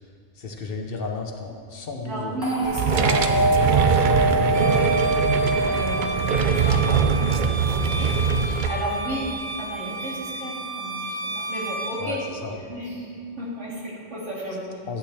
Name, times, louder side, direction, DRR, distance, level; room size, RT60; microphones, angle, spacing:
voice 1, 0.4-2.5 12.0-12.6 14.9-15.0, left 3 dB, 55° left, 3 dB, 0.9 m, -33 dB
voice 2, 1.7-13.1 13.4-14.7, right 1 dB, 85° right, -6 dB, 2.6 m, -33 dB
sound 1, 2.4-6.6, right 2 dB, 20° right, 2.0 m, -24 dB
sound 2, 2.6-8.7, right 6 dB, 55° right, 0.6 m, -22 dB
Bowed string instrument, 4.5-12.0, right 1 dB, 10° left, 2.2 m, -32 dB
11.5 x 8.5 x 3.3 m, 2.4 s
omnidirectional pair, 1.2 m